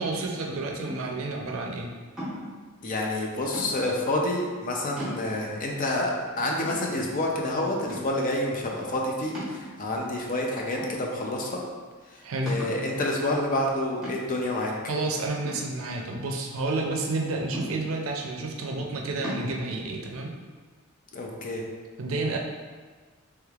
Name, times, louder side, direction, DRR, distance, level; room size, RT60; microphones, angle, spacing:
voice 1, 0.0-1.9 12.2-12.5 14.9-20.3 22.0-22.4, right 2 dB, 75° right, 1 dB, 0.5 m, -30 dB
sound 1, 0.8-1.3 2.2-2.6 3.5-4.0 4.6-4.7 5.0-5.6 6.1-6.2 6.6-7.4 7.9-8.3 9.3-10.1 10.8-11.4 11.7-11.8 12.5-12.9 14.0-14.5 15.4-16.3 17.5-18.1 19.2-19.5, equal, ahead, 1.0 m, -37 dB
voice 2, 2.8-11.6 12.5-14.7 21.1-21.6, left 1 dB, 40° left, 0 dB, 0.5 m, -28 dB
3.2 x 3.2 x 2.3 m, 1.5 s
head